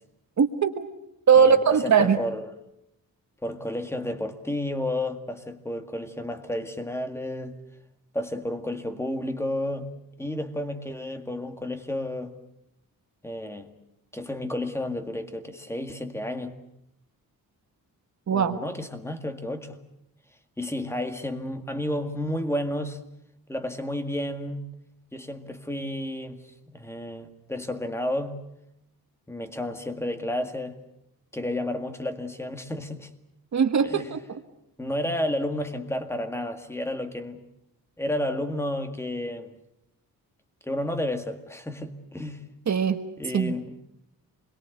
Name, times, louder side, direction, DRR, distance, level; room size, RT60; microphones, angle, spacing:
voice 1, 0.4-0.9 1.3-2.2 18.3-18.6 33.5-34.4 42.7-43.0 43.3-43.5, right 6 dB, 50° right, 8 dB, 1.4 m, -20 dB
voice 2, 1.4-2.5 3.4-7.6 8.1-9.9 10.2-12.3 13.2-13.7 14.1-16.5 18.3-19.8 20.6-23.0 23.5-24.6 25.1-28.4 29.3-30.8 31.3-33.1 33.8-34.1 34.8-37.4 38.0-39.5 40.6-42.4 43.2-43.8, left 1 dB, 5° left, 7 dB, 1.9 m, -31 dB
27.5 x 22.5 x 8.1 m, 0.82 s
wide cardioid pair, 160°, 37 cm